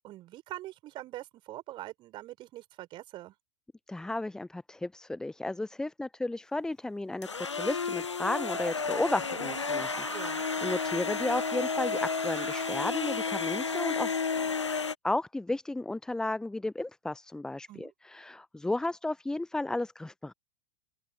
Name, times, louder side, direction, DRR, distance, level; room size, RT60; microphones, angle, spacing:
voice 1, 0.0-3.3 10.1-10.5 17.7-17.9, right 15 dB, 35° right, 4.8 m, -43 dB
voice 2, 3.9-10.3 10.6-14.1 15.0-20.3, left 2 dB, 5° left, 0.7 m, -33 dB
sound 1, 7.2-14.9, left 5 dB, 80° left, 0.8 m, -32 dB
sound 2, 8.3-13.9, right 11 dB, 60° right, 2.0 m, -44 dB
open air
figure-of-eight pair, 90°, 15 cm